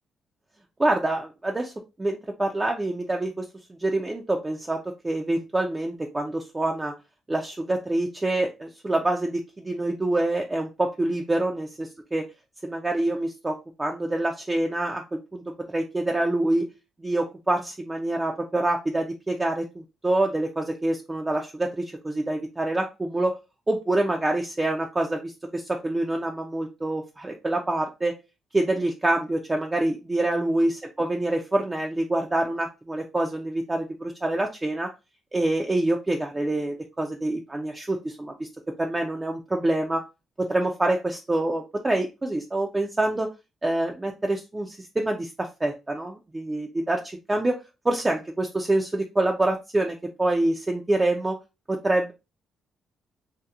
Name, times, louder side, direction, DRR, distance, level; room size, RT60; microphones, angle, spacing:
voice 1, 0.8-1.7 2.0-4.8 5.0-6.9 7.3-12.3 12.6-15.4 15.7-16.7 17.0-23.4 23.7-28.1 28.5-34.9 35.3-38.5 38.8-40.0 40.4-43.3 43.6-47.6 47.8-51.4 51.7-52.1, right 2 dB, 20° right, 2 dB, 0.4 m, -26 dB
2.8 x 2.1 x 2.3 m, 0.27 s
cardioid pair, 90°, 0 cm